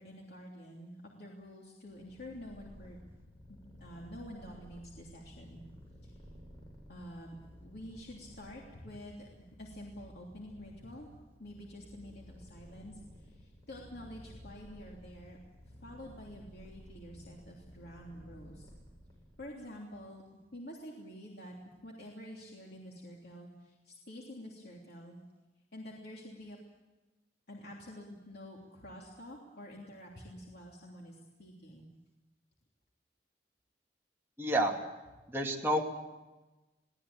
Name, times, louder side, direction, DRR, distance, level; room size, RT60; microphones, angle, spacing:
voice 1, 0.0-3.0 3.5-5.6 6.0-6.2 6.9-9.3 9.6-11.1 11.4-15.4 15.8-18.6 19.4-20.2 20.5-25.2 25.7-26.6 27.5-31.9, equal, 65° left, -2 dB, 3.2 m, -48 dB
Purr, 1.9-19.6, equal, 25° left, 7.7 m, -55 dB
voice 2, 34.4-34.7 35.3-35.8, right 1 dB, 15° right, -1 dB, 2.7 m, -29 dB
23.0 x 18.0 x 8.7 m, 1.1 s
head